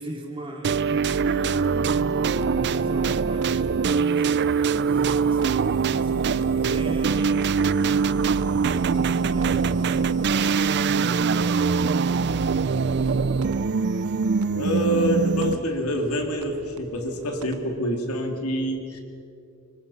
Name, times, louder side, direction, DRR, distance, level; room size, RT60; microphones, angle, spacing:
voice 1, 0.0-12.0, right 1 dB, 25° right, 0 dB, 3.3 m, -40 dB
sound 1, 0.6-15.8, right 5 dB, 50° right, 0.5 m, -23 dB
sound 2, 1.6-17.6, right 3 dB, 80° right, 1.3 m, -42 dB
voice 2, 14.5-19.0, equal, 90° left, 3 dB, 3.2 m, -26 dB
26.0 x 24.0 x 5.8 m, 2.6 s
head